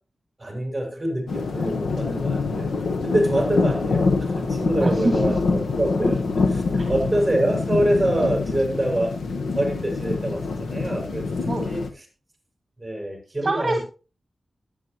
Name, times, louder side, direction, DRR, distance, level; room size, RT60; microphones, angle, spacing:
voice 1, 0.4-2.7 3.0-6.2 6.5-9.2 9.5-11.8 12.8-13.8, right 1 dB, 10° right, 0 dB, 6.4 m, -25 dB
sound 1, 1.3-11.9, left 4 dB, 90° left, 1.3 m, -25 dB
voice 2, 4.8-5.3 11.5-11.7 13.4-13.8, right 2 dB, 30° right, 2 dB, 2.3 m, -24 dB
21.0 x 8.6 x 3.1 m, 0.35 s
wide cardioid pair, 135°, 0 cm